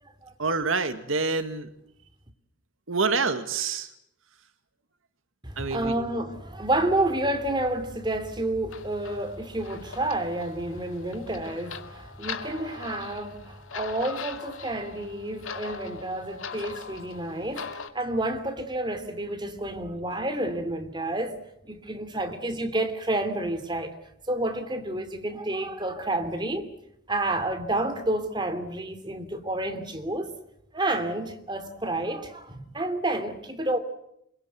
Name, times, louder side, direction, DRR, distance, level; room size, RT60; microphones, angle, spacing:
voice 1, 0.4-1.7 2.9-3.9 5.6-5.9, right 4 dB, 80° right, 1.9 m, -27 dB
voice 2, 5.4-21.4 21.6-24.0 24.3-26.7 27.1-30.3 30.7-33.8, right 1 dB, 20° right, 2.9 m, -30 dB
sound 1, 8.7-17.9, left 5 dB, 80° left, 2.3 m, -41 dB
28.0 x 22.0 x 8.1 m
head